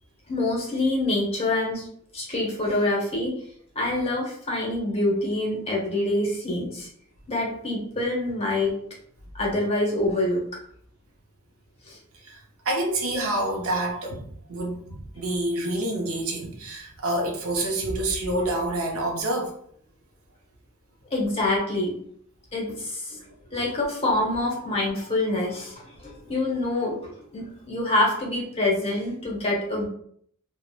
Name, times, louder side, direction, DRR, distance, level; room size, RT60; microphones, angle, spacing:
voice 1, 0.3-1.9 2.1-3.3 3.7-6.9 7.3-8.7 9.3-10.4 11.9-12.0 21.1-21.9 22.5-23.2 23.5-29.9, left 2 dB, 30° left, -3 dB, 0.8 m, -26 dB
voice 2, 12.2-19.6 23.3-23.7, right 1 dB, 80° right, 0 dB, 0.5 m, -28 dB
2.9 x 2.1 x 2.3 m, 0.64 s
head